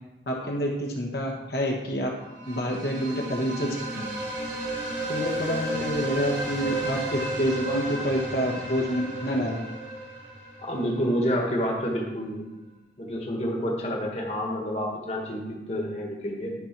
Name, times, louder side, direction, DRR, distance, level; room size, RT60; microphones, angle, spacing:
voice 1, 0.3-2.1 2.5-4.1 5.1-9.6, equal, 60° left, -1 dB, 1.2 m, -28 dB
sound 1, 2.3-11.1, right 1 dB, 85° right, 3.0 m, -33 dB
voice 2, 10.6-12.4 13.0-16.5, equal, 35° left, -1 dB, 1.6 m, -28 dB
11.0 x 4.4 x 6.0 m, 1.0 s
head